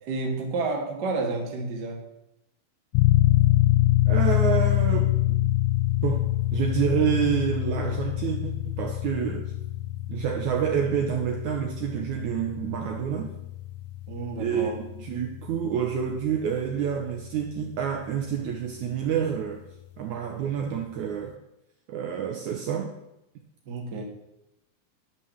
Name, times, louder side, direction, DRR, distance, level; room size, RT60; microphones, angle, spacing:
voice 1, 0.0-2.0 14.1-14.8 23.6-24.0, right 3 dB, 55° right, 1 dB, 1.1 m, -30 dB
sound 1, 2.9-17.4, left 16 dB, 85° left, 2.1 m, -25 dB
voice 2, 4.1-5.6 6.0-6.2 6.5-9.5 10.1-13.4 14.4-19.6 20.0-21.4 21.9-22.9, right 8 dB, 90° right, 3 dB, 1.7 m, -28 dB
11.0 x 5.7 x 7.2 m, 0.88 s
omnidirectional pair, 4.6 m